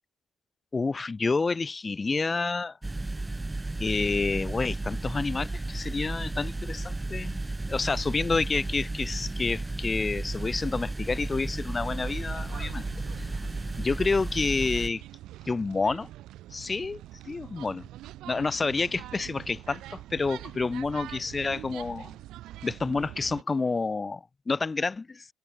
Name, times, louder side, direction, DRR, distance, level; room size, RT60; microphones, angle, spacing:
voice 1, 0.7-2.8 3.8-12.9 13.2-13.3 13.8-15.0 15.5-16.1 16.5-17.9 18.3-22.1 22.6-25.3, left 4 dB, 20° left, 0.3 m, -29 dB
sound 1, 2.8-14.9, right 2 dB, 10° right, 1.2 m, -33 dB
sound 2, 11.9-23.4, right 15 dB, 80° right, 2.8 m, -44 dB
cardioid pair, 150°, 0 cm